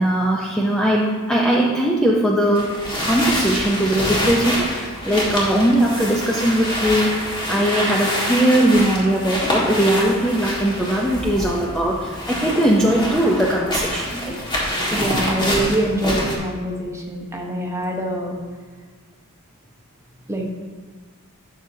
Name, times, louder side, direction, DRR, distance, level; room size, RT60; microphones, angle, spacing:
voice 1, 0.0-14.4, right 1 dB, 5° left, -3 dB, 0.6 m, -20 dB
sound 1, 2.5-16.3, equal, 20° left, 1.7 m, -26 dB
voice 2, 14.9-18.4 20.3-20.5, right 1 dB, 15° right, 0 dB, 1.0 m, -24 dB
11.5 x 6.5 x 2.7 m, 1.5 s
head